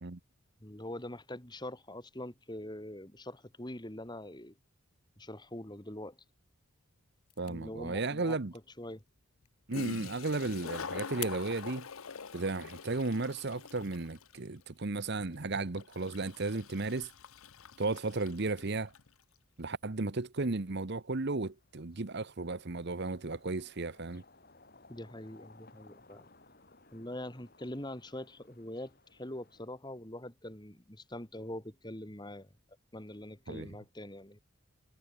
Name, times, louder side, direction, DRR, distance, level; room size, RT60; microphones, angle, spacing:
voice 1, 0.6-4.5 5.2-6.2 7.5-8.4 8.8-9.0 24.9-26.3 26.9-32.5 32.9-34.4, left 1 dB, 20° left, 2.5 m, -43 dB
sound 1, 7.2-11.4, left 15 dB, 85° left, 3.3 m, -50 dB
voice 2, 7.4-8.5 9.7-11.9 12.3-17.1 17.8-18.9 19.6-24.2 33.5-33.7, right 3 dB, 50° right, 1.0 m, -34 dB
Toilet flush, 7.7-7.8 9.4-9.5 9.7-19.1, left 5 dB, 70° left, 0.8 m, -45 dB
sound 2, 20.5-20.6 21.2-29.7, left 3 dB, 45° left, 5.6 m, -61 dB
head